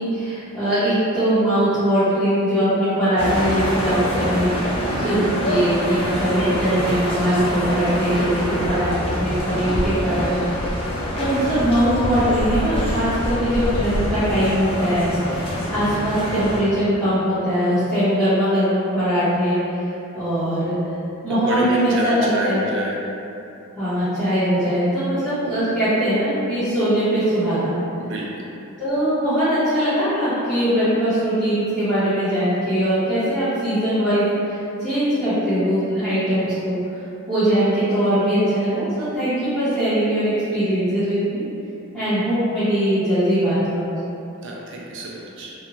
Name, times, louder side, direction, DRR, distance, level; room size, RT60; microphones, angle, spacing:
voice 1, 0.0-8.9 9.2-10.9 11.2-19.6 20.1-20.8 21.2-22.6 23.8-27.7 28.8-36.8 37.3-41.4 41.9-43.8, equal, ahead, -21 dB, 0.9 m, -21 dB
sound 1, 3.2-16.6, equal, 25° left, 0.4 m, -25 dB
voice 2, 4.9-5.3 21.5-23.0 28.0-28.5 44.4-45.5, right 1 dB, 55° right, -3 dB, 0.4 m, -27 dB
2.8 x 2.2 x 2.5 m, 2.8 s
head